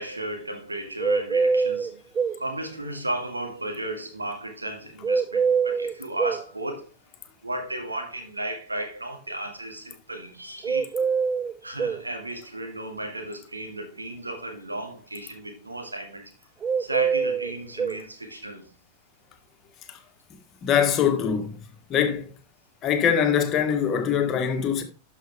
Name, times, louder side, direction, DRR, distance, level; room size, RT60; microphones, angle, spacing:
voice 1, 0.0-2.0 2.4-6.9 7.4-10.9 11.6-16.3 16.8-18.6, right 1 dB, 80° right, 1.8 m, -34 dB
sound 1, 1.0-2.4 5.0-6.4 10.6-12.0 16.6-18.0, right 5 dB, 20° right, 0.3 m, -24 dB
voice 2, 20.6-21.6 21.9-22.3 22.8-24.8, left 8 dB, 30° left, 1.5 m, -23 dB
12.0 x 5.7 x 3.4 m
figure-of-eight pair, 90°, 0 cm